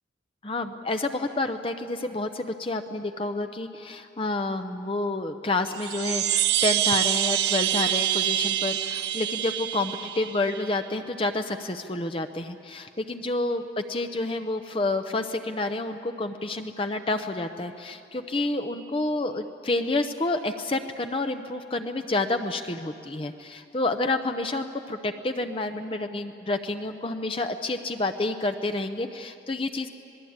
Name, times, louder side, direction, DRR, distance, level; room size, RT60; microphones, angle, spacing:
voice 1, 0.4-29.9, left 2 dB, 30° left, 7 dB, 0.7 m, -29 dB
sound 1, 5.7-10.7, right 12 dB, 60° right, 0.8 m, -26 dB
26.5 x 19.5 x 8.8 m, 2.6 s
head